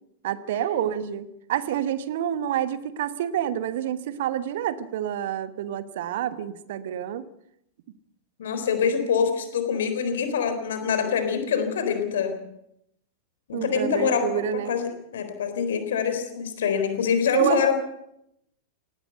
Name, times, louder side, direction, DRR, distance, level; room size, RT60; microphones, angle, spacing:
voice 1, 0.2-7.2 13.5-14.7 17.3-17.7, right 10 dB, 55° right, 14 dB, 1.2 m, -28 dB
voice 2, 8.4-12.3 13.5-14.3 14.5-17.7, left 6 dB, 60° left, 8 dB, 3.9 m, -25 dB
18.5 x 17.5 x 8.0 m, 0.79 s
figure-of-eight pair, 90°, 0 cm